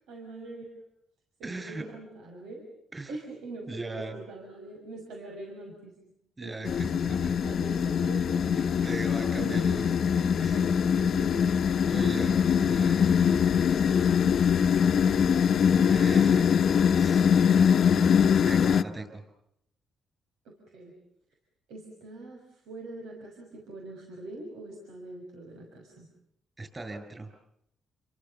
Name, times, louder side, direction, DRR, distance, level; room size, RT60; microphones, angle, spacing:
voice 1, 0.1-0.7 1.4-2.6 3.1-6.1 6.4-8.9 9.3-11.5 20.4-20.9 21.7-26.1, right 2 dB, 85° right, 0 dB, 6.1 m, -43 dB
voice 2, 1.4-1.9 2.9-3.1 3.7-4.1 6.4-7.3 8.5-9.8 10.4-10.6 11.8-13.4 15.7-16.5 16.9-17.3 18.4-19.2 26.6-27.3, right 2 dB, 25° right, 7 dB, 6.8 m, -39 dB
sound 1, 6.7-18.8, left 7 dB, 60° left, 1.0 m, -23 dB
30.0 x 23.5 x 7.1 m, 0.76 s
cardioid pair, 90°, 0 cm